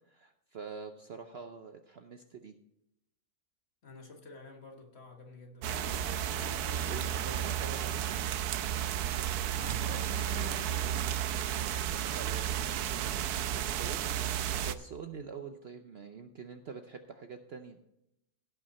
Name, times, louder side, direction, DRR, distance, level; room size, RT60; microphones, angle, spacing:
voice 1, 0.1-2.5 6.7-8.0 11.5-14.0 14.3-17.8, right 6 dB, 55° right, 0.8 m, -46 dB
voice 2, 3.8-6.1 9.5-11.7, left 3 dB, 45° left, 1.6 m, -49 dB
sound 1, 5.6-14.7, right 10 dB, 90° right, 1.1 m, -33 dB
sound 2, 9.3-13.2 14.4-14.5, right 7 dB, 70° right, 1.1 m, -53 dB
16.5 x 5.8 x 4.2 m
omnidirectional pair, 1.6 m